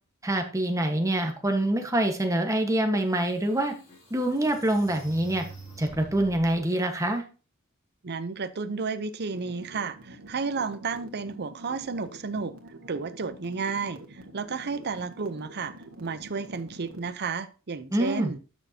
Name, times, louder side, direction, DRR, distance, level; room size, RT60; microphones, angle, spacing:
voice 1, 0.2-3.7 4.1-5.4 5.8-7.2 17.9-18.3, right 1 dB, 15° right, 1.3 m, -25 dB
sound 1, 3.5-6.6, right 2 dB, 30° left, 2.7 m, -47 dB
voice 2, 8.0-12.5 12.9-15.7 16.0-18.4, right 4 dB, 50° right, 0.7 m, -32 dB
sound 2, 9.3-17.1, right 1 dB, 90° right, 1.6 m, -47 dB
12.0 x 6.3 x 2.8 m
head